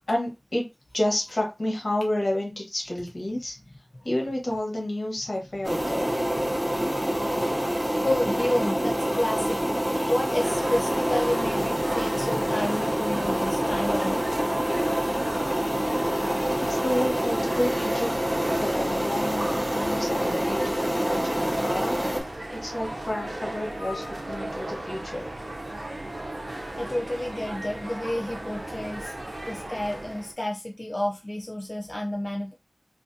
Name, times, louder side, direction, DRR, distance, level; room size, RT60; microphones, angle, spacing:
voice 1, 0.1-0.7 0.9-3.6 4.0-6.1 16.6-18.1 18.6-22.0 22.5-25.3, left 1 dB, 70° left, 1.0 m, -30 dB
sound 1, 5.6-22.2, equal, 20° right, 0.7 m, -26 dB
voice 2, 8.0-9.6 10.0-14.3 26.8-29.1 29.5-32.5, left 1 dB, 40° left, 0.4 m, -30 dB
sound 2, 10.4-30.3, right 1 dB, 60° right, 0.6 m, -36 dB
2.5 x 2.4 x 2.6 m
wide cardioid pair, 55°, 0 cm